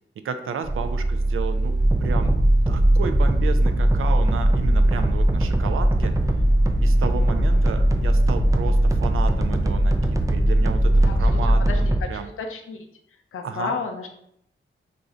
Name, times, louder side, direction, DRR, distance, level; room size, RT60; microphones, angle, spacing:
voice 1, 0.2-1.7 2.0-2.3 2.7-6.1 6.8-12.3 13.4-13.7, right 6 dB, 80° right, 8 dB, 0.4 m, -32 dB
sound 1, 0.6-11.9, right 2 dB, 60° right, 1.0 m, -27 dB
sound 2, 1.8-12.0, right 1 dB, 15° right, 0.4 m, -20 dB
voice 2, 12.4-12.8 13.3-14.1, left 5 dB, 90° left, 5 dB, 0.5 m, -31 dB
2.6 x 2.4 x 4.2 m, 0.73 s
cardioid pair, 50°, 21 cm